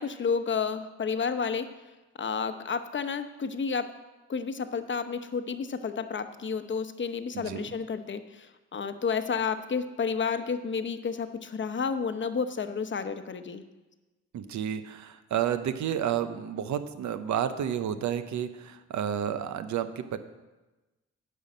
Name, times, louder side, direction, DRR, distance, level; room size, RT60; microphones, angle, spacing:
voice 1, 0.0-1.7 2.2-3.9 4.3-13.6, left 5 dB, 40° left, 9 dB, 0.9 m, -31 dB
voice 2, 14.3-20.2, right 9 dB, 75° right, 11 dB, 0.8 m, -31 dB
9.4 x 5.5 x 7.5 m, 1.1 s
cardioid pair, 65°, 29 cm